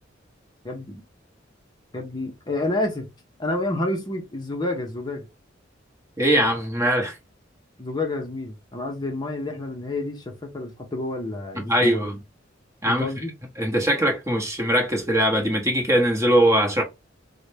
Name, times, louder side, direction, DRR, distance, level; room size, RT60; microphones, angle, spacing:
voice 1, 0.6-1.0 1.9-3.1 3.4-5.3 7.8-12.1 12.9-13.3, left 2 dB, 20° left, 0.6 m, -29 dB
voice 2, 6.2-7.2 11.6-12.2 12.8-13.1 13.6-16.8, right 1 dB, 15° right, 0.9 m, -21 dB
3.9 x 2.1 x 3.2 m
head